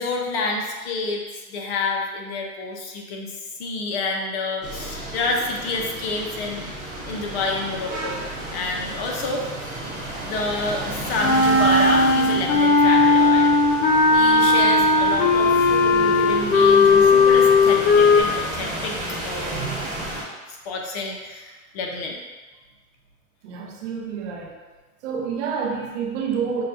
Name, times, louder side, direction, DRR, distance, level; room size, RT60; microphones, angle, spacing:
voice 1, 0.0-3.3 3.6-6.7 7.0-8.2 8.5-9.5 10.2-13.5 14.1-19.5 20.5-22.2, left 3 dB, 45° left, 1 dB, 0.6 m, -28 dB
sound 1, 4.6-20.2, right 1 dB, 15° right, 0.9 m, -32 dB
Wind instrument woodwind instrument, 11.2-18.2, left 3 dB, 80° left, 0.9 m, -16 dB
voice 2, 19.5-19.8 23.4-24.5 25.0-26.6, right 6 dB, 50° right, 0 dB, 0.7 m, -28 dB
5.8 x 2.2 x 2.5 m, 1.2 s
hypercardioid pair, 130°, 45 cm